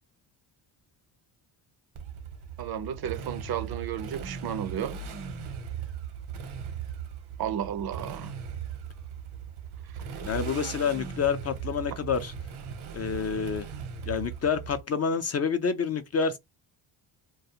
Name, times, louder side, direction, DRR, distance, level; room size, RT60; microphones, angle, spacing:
Motorcycle, 2.0-14.8, right 7 dB, 75° right, 0.9 m, -38 dB
voice 1, 2.6-4.9 7.4-8.3, right 9 dB, 50° right, 0.5 m, -33 dB
voice 2, 10.2-12.3 12.9-13.7 14.0-16.4, left 6 dB, 35° left, 0.4 m, -28 dB
2.3 x 2.3 x 2.7 m
supercardioid pair, 70°, 48 cm